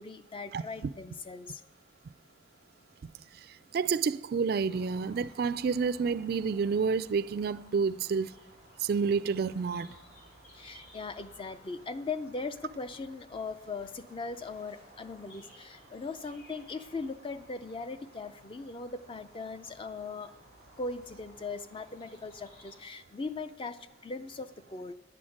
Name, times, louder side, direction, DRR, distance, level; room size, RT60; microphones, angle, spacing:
voice 1, 0.0-1.6 10.5-20.3 20.8-24.9, left 3 dB, 25° left, 0.4 m, -39 dB
voice 2, 3.7-8.3 8.8-9.9, right 5 dB, 50° right, 0.3 m, -29 dB
sound 1, 4.7-22.8, equal, 60° left, 4.9 m, -57 dB
10.5 x 8.7 x 6.3 m
head